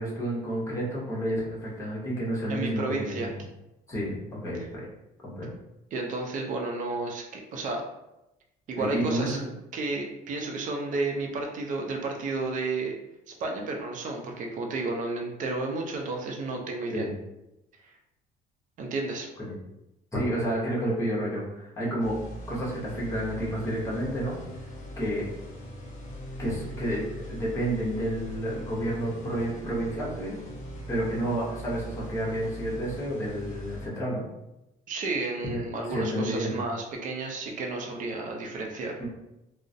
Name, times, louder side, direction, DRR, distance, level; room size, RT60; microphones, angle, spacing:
voice 1, 0.0-3.4 3.9-4.8 5.2-5.5 8.8-9.5 16.9-17.1 19.4-19.5 20.1-22.2 22.5-24.4 25.0-25.3 26.4-30.4 30.9-34.2 35.5-35.6 35.9-36.6, right 1 dB, 15° left, -6 dB, 0.9 m, -30 dB
voice 2, 2.5-3.3 5.9-7.8 8.7-9.4 9.7-12.9 13.4-17.1 17.8-17.9 18.8-19.3 34.9-38.9, right 3 dB, 50° right, 1 dB, 0.5 m, -32 dB
sound 1, 22.0-33.9, equal, 45° left, 0.7 m, -41 dB
2.3 x 2.0 x 2.6 m, 0.91 s
cardioid pair, 110°, 17 cm